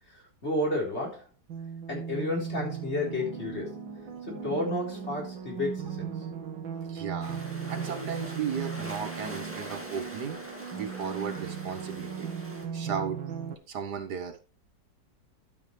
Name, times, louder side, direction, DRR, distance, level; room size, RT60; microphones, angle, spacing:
voice 1, 0.1-1.3 1.9-3.8 4.3-6.1, left 1 dB, 35° left, 4.2 m, -32 dB
sound 1, 1.5-13.5, right 7 dB, 85° right, 2.1 m, -37 dB
voice 2, 6.9-7.4 7.7-10.4 10.7-12.3 12.7-13.2 13.7-14.4, right 7 dB, 65° right, 1.5 m, -35 dB
sound 2, 7.2-12.7, equal, 5° right, 2.0 m, -43 dB
12.0 x 8.4 x 3.3 m
omnidirectional pair, 2.0 m